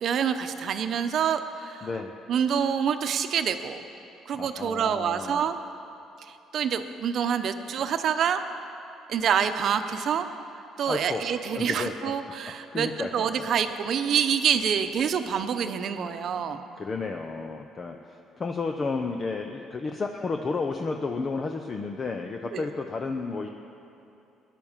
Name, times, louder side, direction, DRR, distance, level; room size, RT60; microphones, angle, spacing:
voice 1, 0.0-1.9 2.3-3.8 4.3-5.6 6.2-8.4 9.1-10.3 10.8-16.6 22.5-22.7, right 7 dB, 55° right, 8 dB, 0.9 m, -27 dB
voice 2, 1.8-2.1 4.3-5.5 10.9-11.2 11.5-12.3 12.7-13.5 16.0-16.3 16.8-23.5, left 4 dB, 30° left, 4 dB, 0.8 m, -32 dB
17.0 x 11.0 x 7.4 m, 2.8 s
cardioid pair, 115°, 0 cm